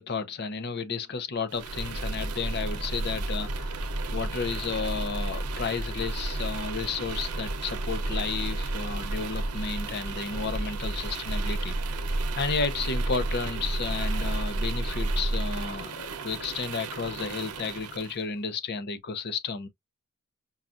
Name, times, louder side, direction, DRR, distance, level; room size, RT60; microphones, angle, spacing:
voice 1, 0.0-3.8 4.1-11.8 12.3-19.7, left 5 dB, 50° left, 0.7 m, -32 dB
sound 1, 1.5-18.2, right 2 dB, 85° right, 0.7 m, -32 dB
5.5 x 2.4 x 2.4 m
head